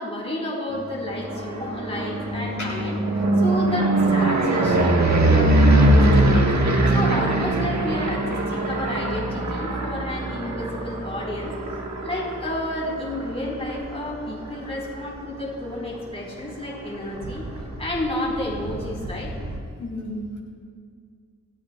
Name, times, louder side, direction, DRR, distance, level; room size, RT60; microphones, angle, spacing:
voice 1, 0.0-17.4 17.8-19.3, left 1 dB, 20° left, -4 dB, 4.6 m, -31 dB
sound 1, 1.0-15.0 15.4-15.9 16.1-16.2 16.5-16.6 16.8-19.6, right 1 dB, 70° right, 1.6 m, -22 dB
voice 2, 19.8-20.4, left 1 dB, 85° left, -4 dB, 3.5 m, -32 dB
26.0 x 15.5 x 2.4 m, 2.1 s
wide cardioid pair, 85°, 29 cm